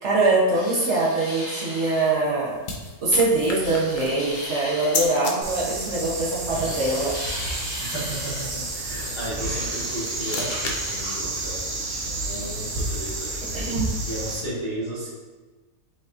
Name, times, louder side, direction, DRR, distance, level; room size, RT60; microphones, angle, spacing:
voice 1, 0.0-2.5 3.0-7.1 13.5-14.0, right 2 dB, 55° right, -6 dB, 1.2 m, -23 dB
sound 1, 0.5-2.2 3.5-5.3 6.5-8.5 9.5-11.1, left 1 dB, 40° left, 1.7 m, -37 dB
sound 2, 1.7-5.3 9.5-12.8, left 3 dB, 70° left, 0.4 m, -35 dB
sound 3, 5.4-14.4, right 2 dB, 80° right, 1.3 m, -30 dB
voice 2, 7.8-13.6 14.0-15.1, right 1 dB, 25° left, -10 dB, 0.9 m, -34 dB
5.6 x 2.9 x 2.5 m, 1.3 s
omnidirectional pair, 1.6 m